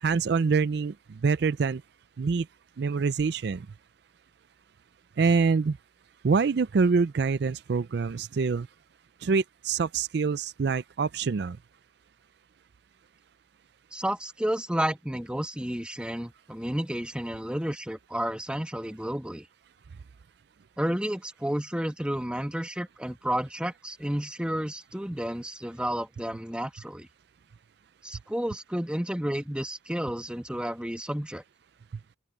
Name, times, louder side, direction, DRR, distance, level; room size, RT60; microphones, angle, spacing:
voice 1, 0.0-1.8 2.2-2.5 2.8-3.7 5.2-5.8 6.2-8.7 9.2-11.6, right 5 dB, 60° right, 0.4 m, -25 dB
voice 2, 13.9-19.5 20.8-27.1 28.0-31.4, equal, 5° right, 1.2 m, -31 dB
open air
head